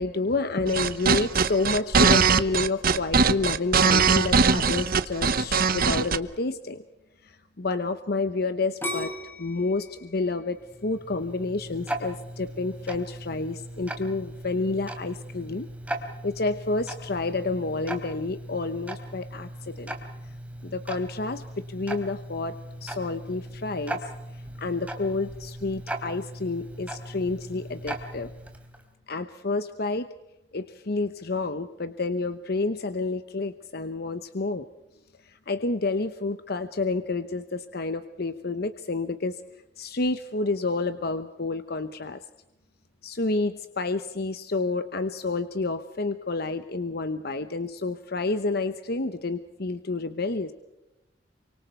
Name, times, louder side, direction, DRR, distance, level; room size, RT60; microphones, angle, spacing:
voice 1, 0.0-6.8 7.2-9.1 9.4-15.7 16.2-19.9 20.6-24.1 24.6-28.3 29.1-30.1 30.5-34.7 35.3-39.4 39.8-42.2 43.0-50.5, left 3 dB, 60° left, 10 dB, 1.0 m, -29 dB
sound 1, 0.7-6.2, right 5 dB, 55° right, 1.0 m, -21 dB
sound 2, 8.8-11.7 12.2-12.7, left 1 dB, 10° left, 7.7 m, -36 dB
Tick-tock, 10.6-28.9, right 1 dB, 10° right, 3.5 m, -38 dB
28.0 x 25.5 x 4.6 m, 0.97 s
head